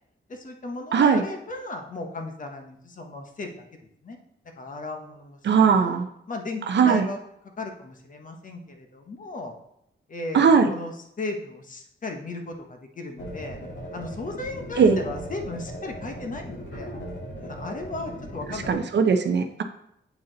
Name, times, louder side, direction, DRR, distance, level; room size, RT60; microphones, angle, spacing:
voice 1, 0.3-3.7 4.0-4.2 4.6-5.4 6.3-7.2 7.6-9.5 10.1-13.6 13.9-16.9 17.3-19.1, left 2 dB, 40° left, 4 dB, 0.9 m, -36 dB
voice 2, 0.9-1.2 5.4-6.1 6.7-7.1 10.3-10.7 14.8-15.0 18.7-19.6, right 6 dB, 60° right, 7 dB, 0.6 m, -19 dB
sound 1, 13.2-18.7, equal, 65° left, 2.0 m, -38 dB
8.1 x 4.1 x 3.9 m, 0.75 s
wide cardioid pair, 160°, 20 cm